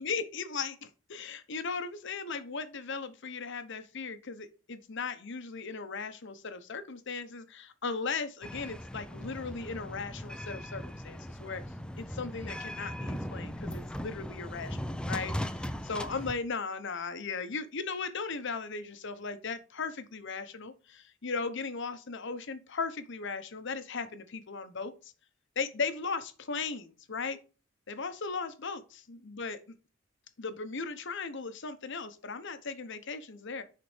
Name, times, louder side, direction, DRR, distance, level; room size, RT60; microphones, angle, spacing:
voice 1, 0.0-11.6 12.0-25.1 25.6-27.4 27.9-29.6 30.4-33.6, left 4 dB, 65° left, 10 dB, 1.0 m, -37 dB
sound 1, 8.4-16.3, equal, 5° left, 0.5 m, -38 dB
10.5 x 4.2 x 3.3 m, 0.35 s
head